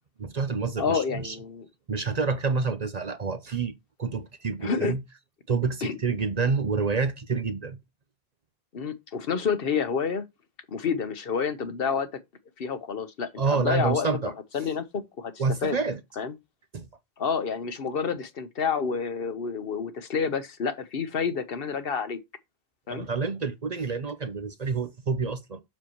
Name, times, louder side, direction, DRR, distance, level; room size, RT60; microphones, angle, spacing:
voice 1, 0.2-1.4 1.9-3.7 4.0-5.0 5.5-7.8 13.4-14.3 15.4-16.0 16.7-16.9 22.9-25.6, right 4 dB, 45° right, 0.8 m, -28 dB
voice 2, 0.8-1.7 4.6-4.9 5.8-6.0 8.7-10.2 10.7-12.1 12.6-14.1 14.5-15.8 16.2-16.3 17.2-22.2 22.9-23.1, left 6 dB, 65° left, 1.1 m, -29 dB
7.5 x 6.6 x 3.0 m
omnidirectional pair, 1.0 m